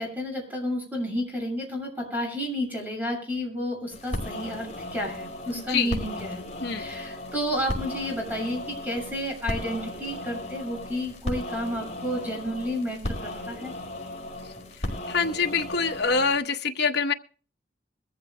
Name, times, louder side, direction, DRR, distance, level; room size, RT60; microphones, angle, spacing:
voice 1, 0.0-6.5 6.7-13.7, equal, 10° right, 1 dB, 6.6 m, -31 dB
sound 1, 3.9-16.3, left 1 dB, 40° left, 5.4 m, -36 dB
voice 2, 5.5-5.9 6.6-6.9 15.1-17.1, left 5 dB, 65° left, 3 dB, 1.1 m, -25 dB
22.5 x 15.0 x 2.2 m, 0.39 s
head